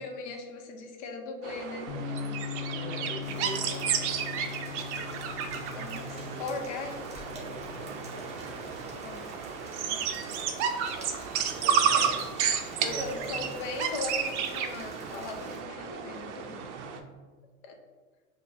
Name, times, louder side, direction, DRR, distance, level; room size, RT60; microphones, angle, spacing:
voice 1, 0.0-2.4 5.8-6.0 6.4-7.0 9.0-9.2 9.9-10.2 11.9-12.1 12.8-16.7 17.6-17.8, left 3 dB, 55° left, 3 dB, 0.8 m, -39 dB
sound 1, 1.4-17.0, right 7 dB, 55° right, 0.5 m, -32 dB
sound 2, 1.9-8.1, left 8 dB, 30° left, 0.4 m, -40 dB
voice 2, 2.7-4.2 5.3-6.8 7.3-9.0 11.5-12.3 12.8-13.3 16.4-17.1, right 2 dB, 40° right, 0 dB, 1.3 m, -43 dB
Rain, 3.2-15.6, right 1 dB, 15° right, 0.7 m, -46 dB
5.4 x 2.3 x 2.8 m, 1.4 s
hypercardioid pair, 115°, 42 cm